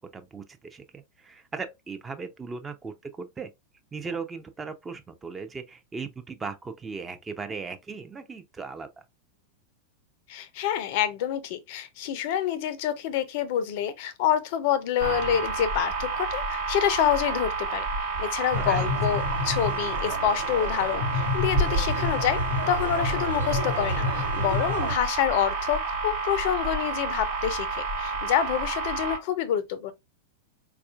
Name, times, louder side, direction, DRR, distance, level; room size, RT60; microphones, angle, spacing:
voice 1, 0.1-3.5 3.9-8.9 18.6-18.9, right 4 dB, 15° right, 0.4 m, -37 dB
voice 2, 10.3-17.8 18.2-22.4 22.7-29.9, left 10 dB, 50° left, 0.4 m, -27 dB
sound 1, 15.0-29.2, right 3 dB, 45° right, 0.8 m, -30 dB
sound 2, 18.5-24.9, left 2 dB, 80° right, 1.0 m, -30 dB
4.1 x 2.3 x 2.3 m
figure-of-eight pair, 90°, 0 cm